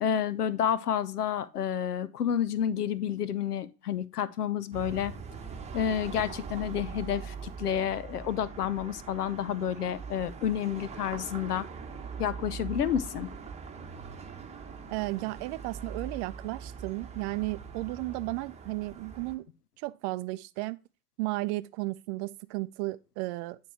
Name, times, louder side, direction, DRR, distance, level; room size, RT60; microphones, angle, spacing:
voice 1, 0.0-5.1 5.7-11.7 12.2-13.3, left 9 dB, 90° left, 0.6 m, -30 dB
sound 1, 4.7-19.3, right 5 dB, 15° right, 1.0 m, -42 dB
voice 2, 14.9-19.5 19.8-20.8 21.2-23.6, right 21 dB, 50° right, 0.5 m, -34 dB
8.9 x 3.2 x 4.4 m
hypercardioid pair, 85°, 45 cm